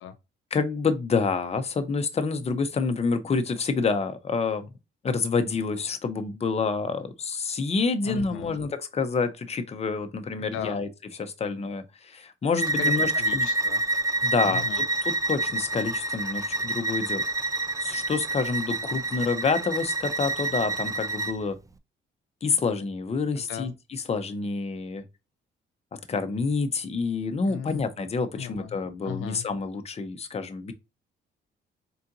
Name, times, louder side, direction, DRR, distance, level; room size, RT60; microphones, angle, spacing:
voice 1, 0.5-4.7 5.0-10.9 11.2-13.5 14.2-17.2 17.8-21.5 22.4-25.0 26.1-30.7, left 4 dB, 30° left, 0.7 m, -28 dB
voice 2, 8.0-8.6 10.4-10.8 12.5-13.8 14.4-14.8 23.4-23.7 27.5-27.9 28.4-28.8 29.0-29.4, left 10 dB, 85° left, 0.6 m, -36 dB
Bowed string instrument, 12.6-21.4, right 2 dB, 15° right, 0.5 m, -28 dB
4.1 x 3.8 x 2.6 m
cardioid pair, 90°, 20 cm